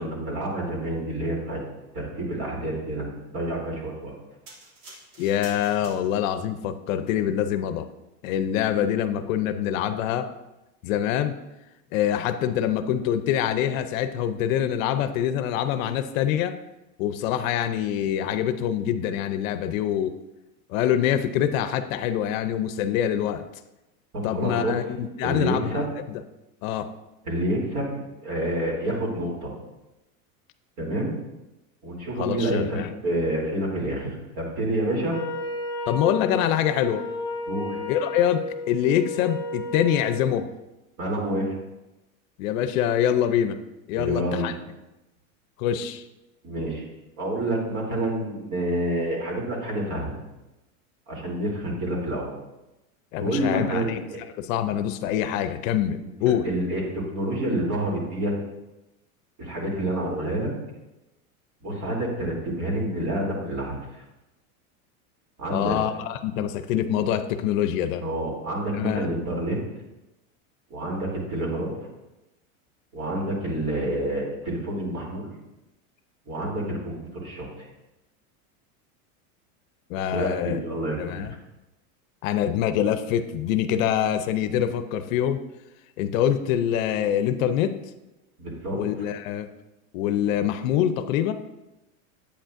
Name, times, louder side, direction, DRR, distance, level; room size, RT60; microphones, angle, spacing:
voice 1, 0.0-1.6 1.9-4.1 24.1-24.8 25.2-25.9 27.2-29.5 30.8-31.1 31.8-35.2 37.5-37.8 41.0-41.5 43.9-44.5 46.4-46.8 47.2-50.2 51.1-52.4 53.2-54.2 56.0-56.1 56.4-58.3 59.4-60.5 61.6-63.8 65.4-65.8 68.0-69.6 70.7-71.7 72.9-75.3 76.3-77.5 80.1-81.3 88.4-88.8, right 1 dB, 40° right, -2 dB, 3.1 m, -28 dB
sound 1, 4.5-6.4 7.1-7.2, right 2 dB, 65° right, 2.6 m, -47 dB
voice 2, 5.2-7.9 8.2-10.3 10.8-11.4 11.9-16.6 17.0-20.1 20.7-23.4 24.2-26.2 26.6-26.9 32.2-32.9 35.9-37.0 37.9-40.5 42.4-43.6 43.9-44.5 45.6-46.0 53.1-54.0 54.4-56.5 65.5-68.0 68.8-69.1 79.9-80.6 81.0-81.3 82.2-85.4 86.0-87.8 88.7-89.5 89.9-91.3, left 10 dB, 65° left, 10 dB, 0.6 m, -25 dB
Wind instrument woodwind instrument, 35.1-40.3, left 2 dB, 10° left, 0.4 m, -33 dB
8.8 x 8.3 x 2.5 m, 0.98 s
supercardioid pair, 130°, 43 cm